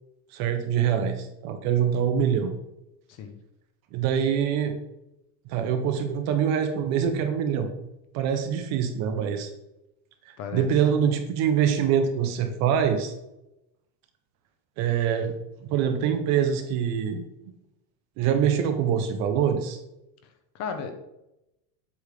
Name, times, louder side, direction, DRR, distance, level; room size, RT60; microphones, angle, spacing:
voice 1, 0.3-2.5 3.9-4.7 5.5-7.7 8.1-9.5 10.5-13.1 14.8-15.3 15.7-17.2 18.2-19.8, right 8 dB, 35° right, 7 dB, 0.6 m, -24 dB
voice 2, 10.4-10.7 20.5-20.9, left 6 dB, 30° left, 7 dB, 0.7 m, -34 dB
8.0 x 3.5 x 6.5 m, 0.88 s
cardioid pair, 175°, 49 cm